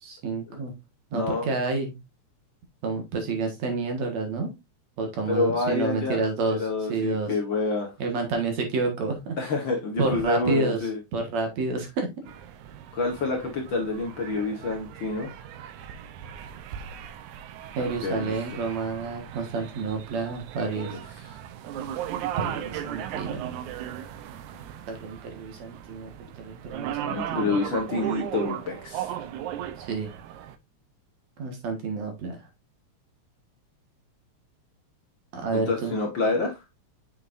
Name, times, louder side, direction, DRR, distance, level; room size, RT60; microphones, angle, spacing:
voice 1, 0.0-0.7 1.1-2.0 2.8-4.5 5.0-7.3 8.0-9.4 10.0-12.1 17.8-21.0 22.2-23.6 24.9-26.1 26.4-27.6 29.8-30.1 31.4-32.4 35.3-35.9, right 3 dB, 70° right, 4 dB, 2.8 m, -29 dB
voice 2, 1.1-1.5 5.3-6.2 6.5-7.9 9.4-11.0 12.9-15.3 17.8-18.3 20.8-21.0 27.1-29.1 35.5-36.5, left 3 dB, 50° left, 1 dB, 1.7 m, -28 dB
sound 1, 12.3-30.6, right 10 dB, 85° right, 2.1 m, -37 dB
7.4 x 6.0 x 2.5 m, 0.22 s
omnidirectional pair, 3.4 m